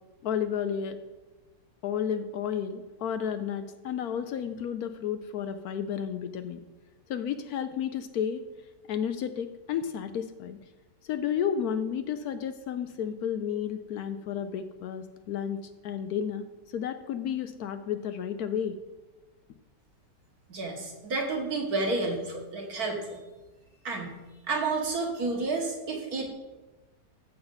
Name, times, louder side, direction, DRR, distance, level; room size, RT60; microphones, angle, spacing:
voice 1, 0.2-1.0 1.8-6.6 7.1-8.4 8.9-10.6 11.0-16.4 16.7-18.8, left 8 dB, 70° left, 9 dB, 1.0 m, -32 dB
voice 2, 20.5-23.2 23.8-24.2 24.5-26.3, right 3 dB, 60° right, 1 dB, 2.0 m, -30 dB
14.0 x 5.7 x 4.0 m, 1.1 s
omnidirectional pair, 1.8 m